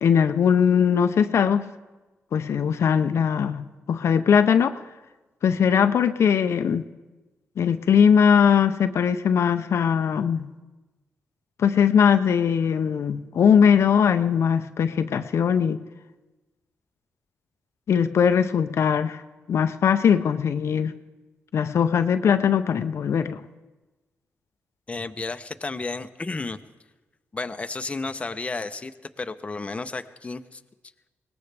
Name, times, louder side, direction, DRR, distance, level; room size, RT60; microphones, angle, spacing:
voice 1, 0.0-1.7 2.3-4.8 5.4-6.9 7.6-10.5 11.6-15.8 17.9-19.2 19.5-20.9 21.5-23.4, left 7 dB, 70° left, 9 dB, 0.6 m, -20 dB
voice 2, 24.9-26.6 27.3-30.6, left 3 dB, 25° left, 8 dB, 0.7 m, -32 dB
21.5 x 19.0 x 3.4 m, 1.2 s
cardioid pair, 90°, 5 cm